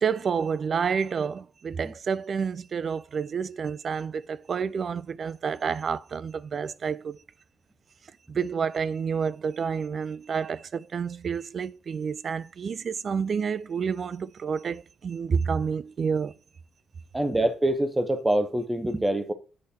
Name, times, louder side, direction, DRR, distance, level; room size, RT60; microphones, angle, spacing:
voice 1, 0.0-7.2 8.3-16.3, right 6 dB, 45° right, 0.3 m, -29 dB
voice 2, 17.1-19.3, right 1 dB, 10° right, 0.9 m, -25 dB
8.5 x 3.3 x 4.2 m
cardioid pair, 90°, 0 cm